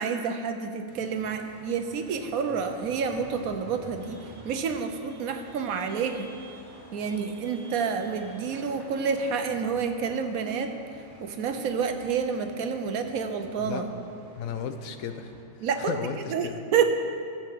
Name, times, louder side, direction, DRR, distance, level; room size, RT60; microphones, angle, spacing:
voice 1, 0.0-4.2 4.4-6.3 6.9-10.7 11.2-13.9 15.6-15.9 16.3-17.0, right 6 dB, 85° right, 7 dB, 1.2 m, -29 dB
sound 1, 0.9-15.4, right 1 dB, 35° right, 1.5 m, -49 dB
voice 2, 14.4-15.3 15.9-16.6, left 7 dB, 80° left, 8 dB, 1.1 m, -34 dB
14.5 x 7.7 x 3.6 m, 2.4 s
omnidirectional pair, 1.5 m